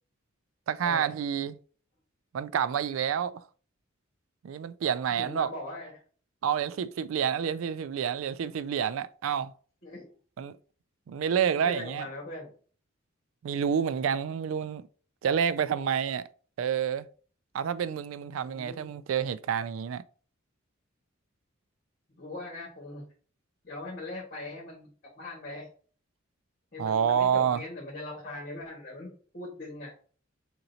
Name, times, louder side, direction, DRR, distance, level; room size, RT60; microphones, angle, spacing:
voice 1, 0.7-1.6 2.3-3.4 4.4-5.5 6.4-9.5 10.4-10.5 11.1-12.1 13.4-14.9 15.2-16.3 16.6-17.1 17.5-20.0 26.8-27.6, right 8 dB, 75° right, 0.3 m, -28 dB
voice 2, 5.2-6.0 9.8-10.0 11.6-12.5 18.5-18.9 22.1-23.1 23.6-25.7 26.7-29.9, left 2 dB, 45° left, 1.4 m, -40 dB
4.4 x 3.8 x 2.7 m
head